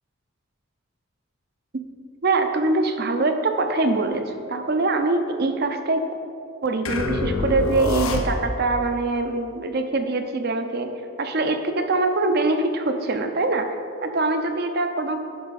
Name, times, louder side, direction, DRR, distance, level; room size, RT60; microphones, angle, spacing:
voice 1, 2.2-6.1 6.6-10.9 11.2-13.7 14.0-15.2, right 3 dB, 50° right, 6 dB, 0.6 m, -23 dB
sound 1, 6.9-8.7, left 2 dB, 85° left, 0.8 m, -25 dB
9.4 x 6.2 x 4.2 m, 2.3 s
head